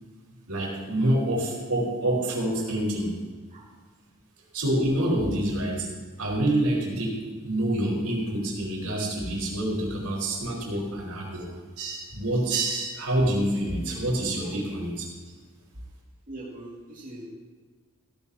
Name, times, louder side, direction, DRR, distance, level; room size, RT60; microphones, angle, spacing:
voice 1, 0.5-3.1 4.5-5.9 6.2-7.1 7.4-11.5 11.8-15.1, right 1 dB, 80° right, -3 dB, 4.5 m, -27 dB
voice 2, 16.3-17.3, right 1 dB, 35° right, -6 dB, 2.3 m, -41 dB
15.5 x 14.0 x 2.9 m, 1.4 s
head